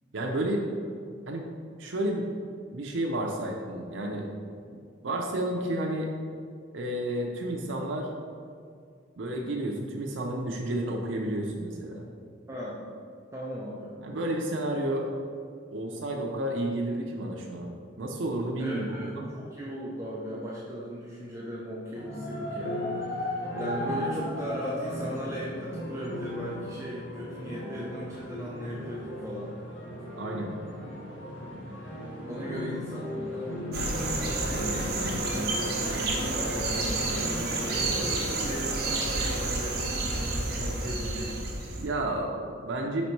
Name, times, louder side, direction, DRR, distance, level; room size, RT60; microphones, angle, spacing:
voice 1, 0.1-0.6 1.3-1.5 1.8-2.3 2.7-4.3 5.0-6.1 6.7-8.1 9.2-12.0 14.0-15.1 15.7-18.9 19.1-19.3 30.2-30.5 41.7-43.1, right 1 dB, 80° right, 0 dB, 0.6 m, -31 dB
voice 2, 13.3-13.9 18.6-29.6 30.9-31.2 32.2-33.9 34.5-41.6, equal, 15° right, -6 dB, 0.6 m, -38 dB
sound 1, 21.9-38.1, left 1 dB, 80° left, 1.2 m, -36 dB
sound 2, 33.7-41.9, right 2 dB, 55° right, 1.0 m, -30 dB
5.1 x 4.1 x 4.5 m, 2.2 s
head